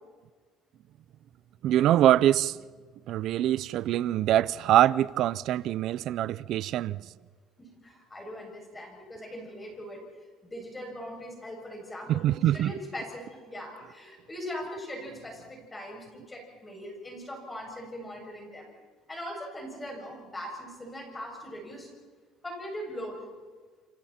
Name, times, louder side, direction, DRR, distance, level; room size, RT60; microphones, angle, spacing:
voice 1, 1.6-2.6 3.1-7.1 12.1-12.7, right 12 dB, 60° right, 0.6 m, -24 dB
voice 2, 7.6-10.1 10.4-18.7 19.1-21.9 22.4-23.2, equal, 15° left, 7.2 m, -40 dB
29.0 x 26.5 x 4.4 m
cardioid pair, 120°, 0 cm